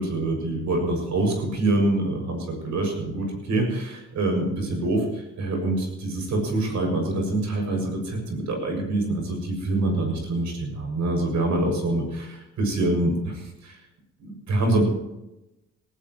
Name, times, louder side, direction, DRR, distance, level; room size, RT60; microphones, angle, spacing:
voice 1, 0.0-13.8 14.2-14.8, right 2 dB, 70° right, 2 dB, 7.1 m, -25 dB
18.5 x 17.0 x 3.2 m, 0.94 s
cardioid pair, 90°, 30 cm